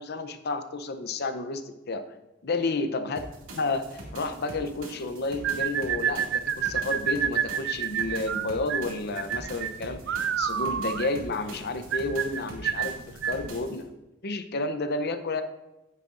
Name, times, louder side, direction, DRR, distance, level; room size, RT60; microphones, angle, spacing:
voice 1, 0.0-2.1 2.4-3.2 3.5-13.9 14.2-15.4, left 2 dB, 55° left, 9 dB, 0.7 m, -31 dB
sound 1, 3.2-13.8, right 1 dB, 80° right, 2.3 m, -44 dB
sound 2, 5.4-13.5, right 8 dB, 65° right, 0.5 m, -29 dB
9.8 x 9.1 x 2.5 m, 0.96 s
head